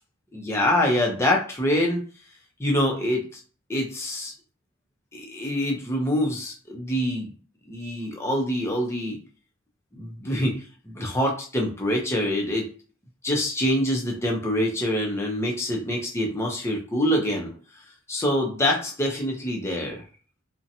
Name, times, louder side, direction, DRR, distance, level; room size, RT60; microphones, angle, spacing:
voice 1, 0.3-2.0 2.6-3.4 3.7-4.3 5.1-7.3 7.7-9.2 9.9-10.5 10.9-12.7 13.2-17.5 18.1-20.0, left 1 dB, 15° left, -1 dB, 0.5 m, -25 dB
2.7 x 2.1 x 2.6 m, 0.39 s
head